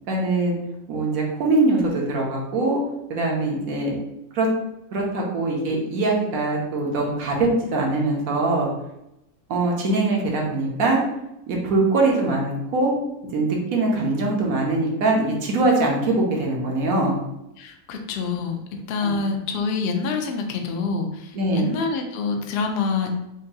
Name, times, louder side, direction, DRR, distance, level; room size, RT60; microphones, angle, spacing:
voice 1, 0.1-0.5 0.9-2.8 3.1-4.0 4.3-4.5 4.9-8.7 9.5-11.0 11.5-12.9 13.2-17.2 19.0-19.1 21.3-21.7, right 2 dB, 80° right, -1 dB, 1.3 m, -22 dB
voice 2, 17.6-23.1, left 4 dB, 65° left, 4 dB, 0.6 m, -26 dB
5.8 x 2.2 x 2.7 m, 0.88 s
omnidirectional pair, 1.5 m